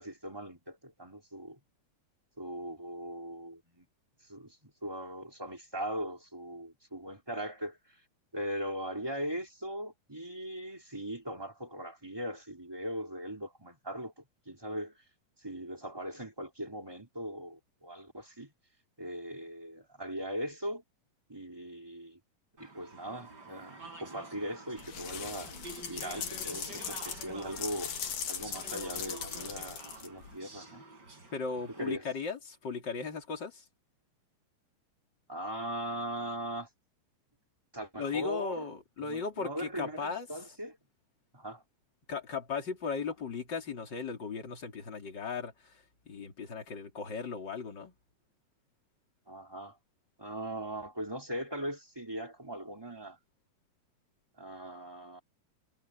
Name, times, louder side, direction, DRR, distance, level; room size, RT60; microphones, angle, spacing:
voice 1, 0.0-1.6 2.4-3.9 4.3-7.8 8.3-14.9 15.4-18.5 19.0-20.8 21.3-22.2 22.6-25.5 25.9-27.9 28.3-30.8 31.8-32.0 35.3-36.7 37.7-38.7 39.0-40.8 41.3-41.6 49.3-49.8 50.2-53.2 54.4-55.2, equal, 5° right, 3.4 m, -39 dB
Speech / Chatter, 22.6-32.0, right 2 dB, 30° right, 5.5 m, -49 dB
sound 1, 24.8-30.3, left 7 dB, 80° left, 3.9 m, -39 dB
voice 2, 31.3-33.6 38.0-40.3 42.1-45.5 46.1-47.9, left 5 dB, 35° left, 3.6 m, -37 dB
omnidirectional pair, 3.7 m